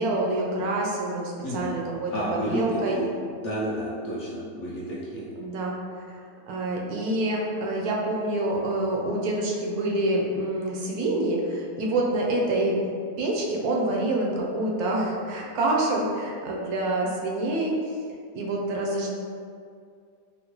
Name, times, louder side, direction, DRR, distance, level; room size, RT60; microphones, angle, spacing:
voice 1, 0.0-1.2 1.5-3.0 5.4-5.8 6.5-17.9 18.3-19.1, right 1 dB, 75° right, -2 dB, 1.0 m, -27 dB
voice 2, 1.4-1.8 2.1-3.1 3.4-5.3, equal, 70° left, -6 dB, 0.6 m, -30 dB
3.7 x 2.1 x 2.9 m, 2.2 s
omnidirectional pair, 1.7 m